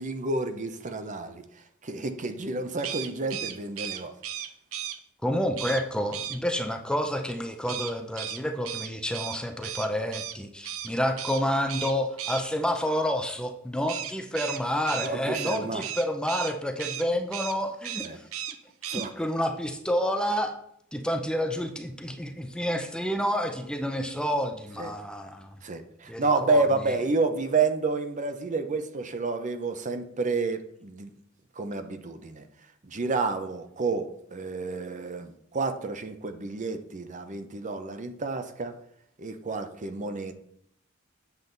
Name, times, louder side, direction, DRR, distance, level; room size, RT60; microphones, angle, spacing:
voice 1, 0.0-4.1 15.0-15.9 18.0-18.2 18.9-19.1 24.8-24.9 25.6-31.1 31.6-32.5 32.8-38.8 39.2-40.3, right 3 dB, 35° right, 8 dB, 0.8 m, -30 dB
sound 1, 2.8-5.0 5.6-5.8 6.1-6.4 7.7-10.3 10.6-10.9 11.2-11.4 11.7-12.4 13.9-16.5 16.8-17.0 17.3-17.6 17.8-18.5 18.8-19.1, right 10 dB, 85° right, 0.8 m, -35 dB
voice 2, 5.2-18.2 18.9-20.6 20.9-25.5 26.1-26.6, equal, 5° left, 5 dB, 0.6 m, -29 dB
8.2 x 7.2 x 3.9 m, 0.69 s
head